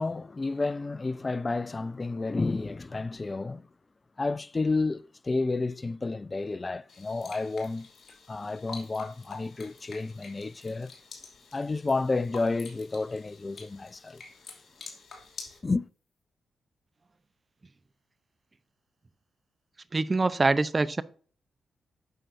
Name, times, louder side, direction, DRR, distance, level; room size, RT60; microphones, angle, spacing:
voice 1, 0.0-3.7 4.2-10.9 11.5-14.2 15.6-15.9, left 3 dB, 35° left, 0.4 m, -31 dB
sound 1, 6.9-15.6, left 5 dB, 55° left, 2.8 m, -47 dB
voice 2, 19.9-21.0, right 3 dB, 35° right, 0.7 m, -24 dB
8.9 x 6.8 x 2.7 m
hypercardioid pair, 40°, 0 cm